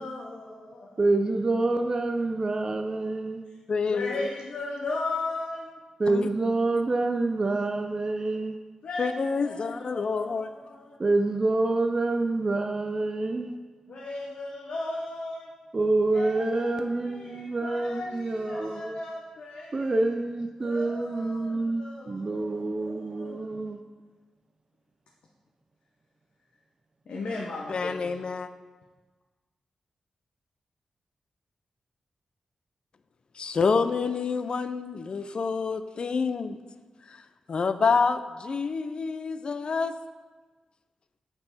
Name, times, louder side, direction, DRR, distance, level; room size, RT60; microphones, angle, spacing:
voice 1, 0.0-1.0 3.9-5.7 8.8-11.0 13.9-15.5 16.1-19.9 20.6-23.6 27.1-28.2, left 2 dB, 80° left, -3 dB, 0.9 m, -37 dB
voice 2, 1.0-3.4 6.0-8.6 11.0-13.6 15.7-19.0 19.7-23.8, right 2 dB, 30° right, 4 dB, 0.4 m, -27 dB
voice 3, 3.7-4.3 6.1-6.3 9.0-10.5 27.7-28.5 33.4-36.6 37.1-37.2 37.5-39.9, left 5 dB, 50° left, 11 dB, 0.4 m, -27 dB
8.5 x 4.5 x 4.1 m, 1.3 s
wide cardioid pair, 120°, 2 cm